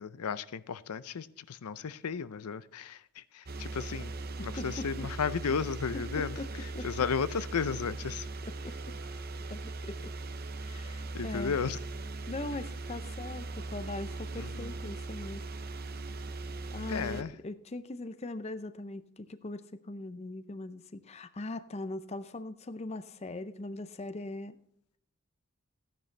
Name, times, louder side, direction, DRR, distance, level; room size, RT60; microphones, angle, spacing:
voice 1, 0.0-4.1 4.4-8.3 11.1-11.8 14.4-14.7 16.9-17.3, left 6 dB, 85° left, 0.5 m, -34 dB
sound 1, 3.5-17.2, right 2 dB, 45° right, 0.7 m, -39 dB
voice 2, 4.4-5.1 6.1-6.5 6.7-6.9 8.6-9.0 9.5-10.1 10.6-11.6 12.3-15.4 16.7-24.6, left 2 dB, 30° left, 0.5 m, -40 dB
14.5 x 10.5 x 3.3 m
head